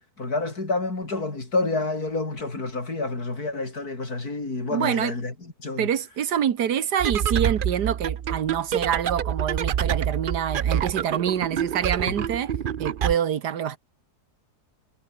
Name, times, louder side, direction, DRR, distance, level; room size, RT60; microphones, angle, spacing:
voice 1, 0.0-5.3 5.6-5.9 12.1-12.2, left 3 dB, 65° left, 5.3 m, -28 dB
voice 2, 4.7-5.1 5.8-12.5 12.8-13.8, right 9 dB, 85° right, 1.8 m, -26 dB
sound 1, 7.0-13.1, right 9 dB, 65° right, 0.5 m, -27 dB
omnidirectional pair, 1.7 m